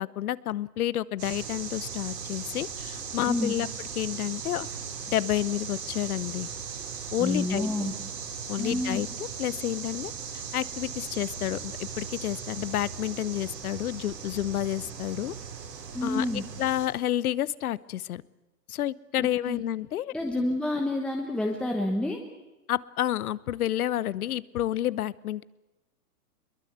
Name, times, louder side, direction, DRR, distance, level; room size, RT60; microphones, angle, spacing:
voice 1, 0.0-3.7 4.0-4.7 5.1-6.5 7.1-7.7 8.5-15.3 16.0-18.2 18.7-20.4 22.7-25.4, left 12 dB, 65° left, 20 dB, 0.9 m, -30 dB
sound 1, 1.2-16.9, right 6 dB, 85° right, 6.0 m, -38 dB
voice 2, 7.2-7.9 8.6-9.0 15.9-16.4 19.2-19.6 20.1-22.2, left 1 dB, ahead, 1 dB, 1.1 m, -29 dB
22.0 x 21.5 x 8.1 m, 1.0 s
hypercardioid pair, 150°, 47 cm